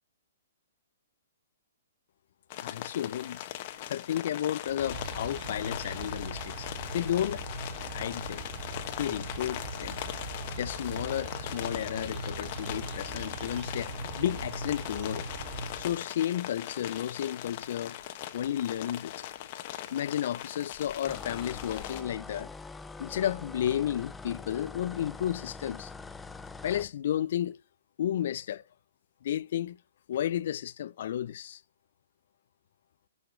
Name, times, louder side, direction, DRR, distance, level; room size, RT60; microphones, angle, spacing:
sound 1, 2.5-22.0, left 13 dB, 40° left, 1.2 m, -40 dB
voice 1, 2.6-3.4 3.9-6.7 6.9-7.4 7.9-8.5 9.0-10.0 10.6-15.3 15.8-18.0 18.3-19.3 19.9-22.5 23.0-25.9 26.6-27.6 28.0-28.6 29.2-29.8 30.1-31.6, left 11 dB, 60° left, 0.5 m, -32 dB
sound 2, 4.7-16.1, right 2 dB, 25° right, 4.0 m, -40 dB
sound 3, 21.1-26.9, left 3 dB, 10° left, 0.5 m, -44 dB
12.5 x 5.2 x 6.2 m
hypercardioid pair, 140°, 0 cm